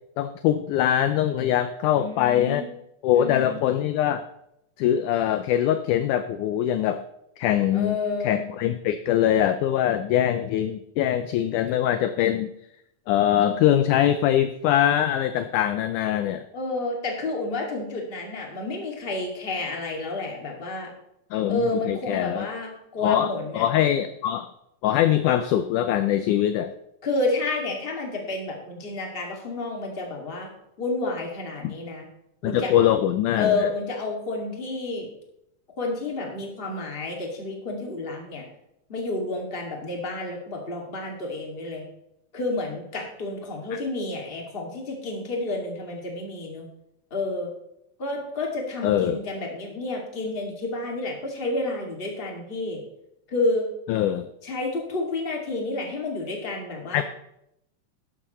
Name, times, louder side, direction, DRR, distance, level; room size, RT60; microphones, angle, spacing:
voice 1, 0.2-2.6 3.0-4.2 4.8-7.0 7.4-8.0 8.2-12.5 13.1-16.4 21.3-22.5 23.0-24.5 24.8-26.7 31.6-31.7 32.4-33.7 43.7-43.8 48.8-49.2 53.9-54.3 56.9-57.0, left 11 dB, 80° left, 10 dB, 1.8 m, -23 dB
voice 2, 2.0-2.6 3.2-3.6 7.7-8.4 16.5-20.9 21.5-23.7 27.0-30.5 30.8-32.0 32.4-32.7 33.3-35.1 35.8-38.4 38.9-41.9 42.3-46.7 47.1-47.5 48.0-52.8 53.3-53.7 54.4-57.0, left 2 dB, 20° left, 0 dB, 1.8 m, -30 dB
12.5 x 11.5 x 3.1 m, 0.80 s
omnidirectional pair, 4.0 m